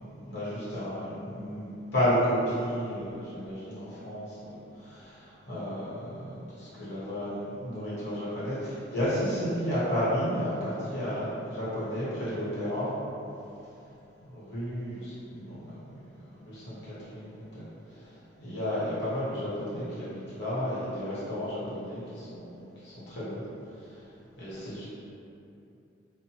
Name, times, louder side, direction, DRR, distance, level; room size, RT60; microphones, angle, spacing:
voice 1, 0.0-1.6 1.9-12.9 14.3-15.8 16.1-17.6 17.9-18.0 18.4-23.4 24.4-24.8, equal, 65° left, -11 dB, 1.0 m, -32 dB
2.7 x 2.2 x 2.8 m, 2.7 s
head